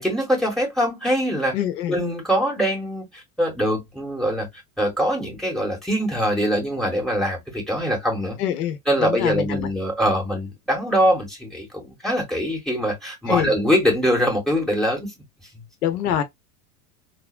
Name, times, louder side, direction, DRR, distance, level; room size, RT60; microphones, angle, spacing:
voice 1, 0.0-1.5 1.9-4.5 4.8-8.4 8.9-15.1, equal, ahead, 1.5 m, -23 dB
voice 2, 1.5-1.9 8.4-9.7 13.3-13.5 15.8-16.2, left 10 dB, 85° left, 0.8 m, -25 dB
3.6 x 2.1 x 2.4 m
hypercardioid pair, 105°, 46 cm